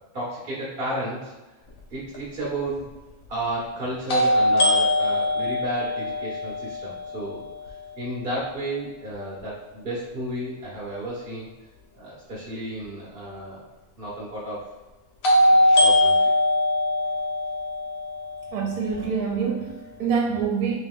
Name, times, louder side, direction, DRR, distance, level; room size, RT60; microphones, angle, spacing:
voice 1, 0.0-1.3 1.9-2.9 3.3-7.5 8.0-11.5 11.9-13.7 14.0-14.7 15.4-16.3, right 1 dB, 45° right, -6 dB, 0.9 m, -32 dB
sound 1, 2.1-2.2 4.1-8.0 15.2-19.3, left 1 dB, 60° left, 1.1 m, -22 dB
voice 2, 18.5-20.8, right 6 dB, 70° right, 0 dB, 1.1 m, -26 dB
3.3 x 3.0 x 3.5 m, 1.1 s
omnidirectional pair, 1.7 m